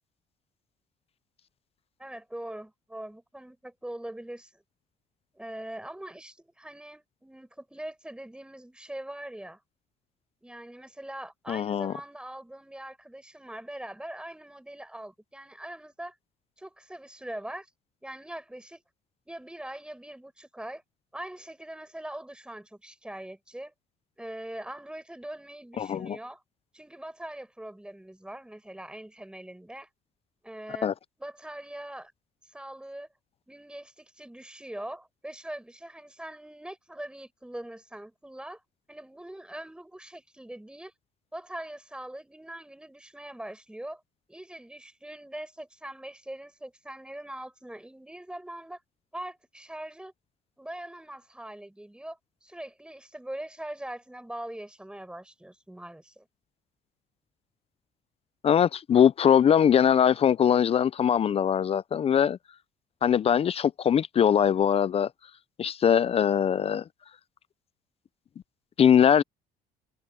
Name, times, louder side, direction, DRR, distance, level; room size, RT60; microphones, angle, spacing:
voice 1, 2.0-4.6 5.3-9.6 10.4-16.1 16.6-17.7 18.0-18.8 19.3-20.8 21.1-23.7 24.2-26.4 26.7-29.9 30.4-30.9 31.2-32.1 32.5-33.1 33.5-38.6 38.9-40.9 41.3-44.0 44.3-48.8 49.1-50.1 50.6-56.3, right 1 dB, 5° right, 5.1 m, -42 dB
voice 2, 11.5-11.9 25.8-26.2 30.8-30.9 58.4-62.4 63.0-65.1 65.6-66.8 68.8-69.2, left 8 dB, 35° left, 0.4 m, -22 dB
cardioid pair, 110°, 17 cm